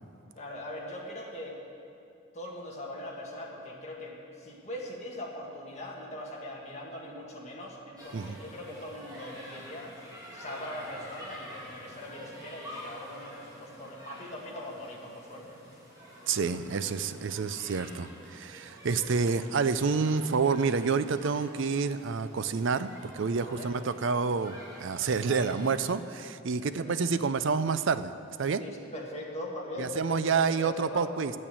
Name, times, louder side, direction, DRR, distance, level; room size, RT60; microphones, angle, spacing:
voice 1, 0.4-1.6 2.3-9.9 10.3-15.6 23.3-23.7 26.6-27.2 28.6-31.2, left 1 dB, 30° left, -2 dB, 1.8 m, -41 dB
sound 1, 8.0-25.9, equal, 15° right, 2.2 m, -48 dB
voice 2, 16.3-28.1 28.4-28.6 29.8-31.3, right 5 dB, 55° right, 12 dB, 0.4 m, -28 dB
11.0 x 8.7 x 8.5 m, 2.6 s
head